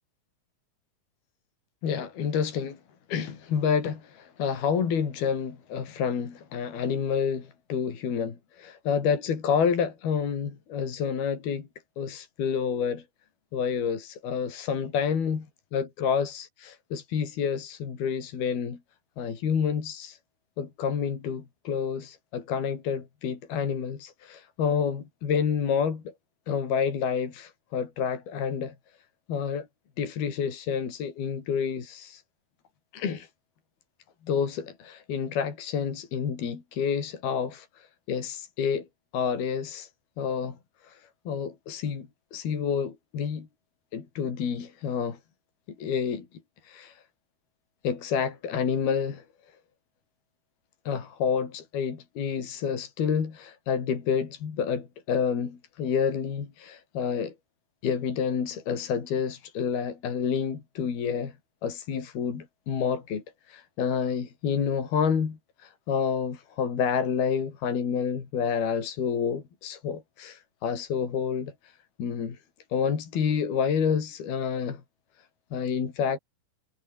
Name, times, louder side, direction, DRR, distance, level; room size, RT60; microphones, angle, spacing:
voice 1, 1.8-2.8 3.1-11.7 12.0-13.0 13.5-15.5 15.7-16.5 16.9-18.8 19.2-20.2 20.6-26.1 26.5-28.7 29.3-29.7 30.0-32.2 32.9-33.3 34.3-38.9 39.1-39.9 40.2-40.5 40.9-41.0 41.3-43.5 43.9-45.2 45.8-46.3 46.7-47.0 47.8-49.2 50.9-57.3 57.8-61.3 61.6-63.2 63.5-71.5 72.0-72.4 72.7-74.8 75.5-76.2, left 7 dB, 70° left, 5.7 m, -29 dB
omnidirectional pair, 4.6 m